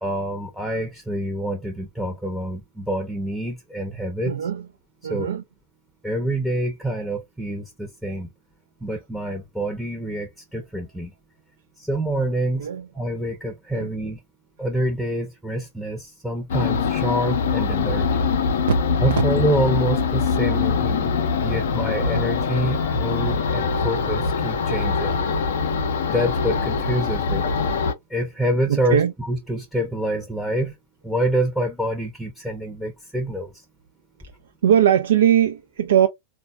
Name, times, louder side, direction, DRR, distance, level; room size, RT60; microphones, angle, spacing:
voice 1, 0.0-4.3 5.1-5.3 6.0-8.3 8.8-11.1 11.8-12.7 12.9-14.2 14.6-18.1 19.0-21.1 21.4-25.2 26.1-27.5 28.1-30.7 31.0-33.5, right 1 dB, ahead, 0.7 m, -26 dB
voice 2, 4.2-4.7 5.0-5.4 12.6-12.9 13.7-13.9 18.7-18.8 25.6-25.7 28.7-29.1 34.6-36.1, right 10 dB, 65° right, 0.3 m, -20 dB
sound 1, 16.5-27.9, left 5 dB, 60° left, 0.5 m, -23 dB
3.8 x 2.2 x 2.3 m
figure-of-eight pair, 90°, 0 cm